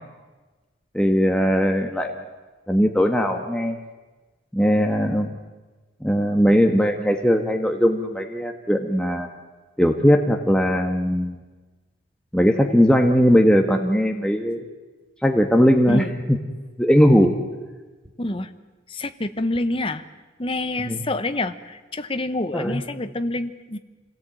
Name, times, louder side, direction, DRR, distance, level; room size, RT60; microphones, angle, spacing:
voice 1, 0.9-2.1 2.7-3.8 4.5-5.3 6.0-9.3 9.8-11.4 12.3-14.6 15.2-16.4 16.8-17.3 20.8-21.0 22.5-22.8, equal, 5° left, 3 dB, 1.3 m, -19 dB
voice 2, 18.2-18.5 18.9-20.0 20.4-23.8, left 2 dB, 30° left, 10 dB, 0.9 m, -27 dB
26.0 x 18.0 x 9.1 m, 1.3 s
head